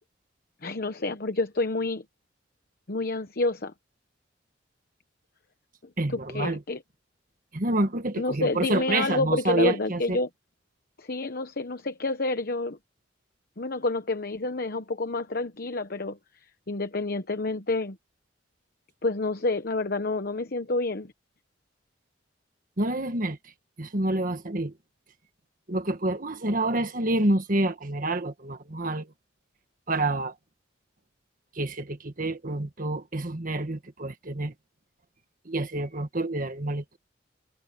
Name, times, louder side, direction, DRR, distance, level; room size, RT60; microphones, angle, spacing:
voice 1, 0.6-2.0 2.9-3.7 6.3-6.8 8.2-10.3 11.0-12.8 13.6-16.2 16.7-18.0 19.0-21.1, left 2 dB, 50° left, 1.0 m, -28 dB
voice 2, 6.0-6.6 7.5-10.2 22.8-23.5 23.8-24.7 25.7-29.1 29.9-30.3 31.5-34.5 35.4-37.0, right 2 dB, 45° right, 1.7 m, -28 dB
head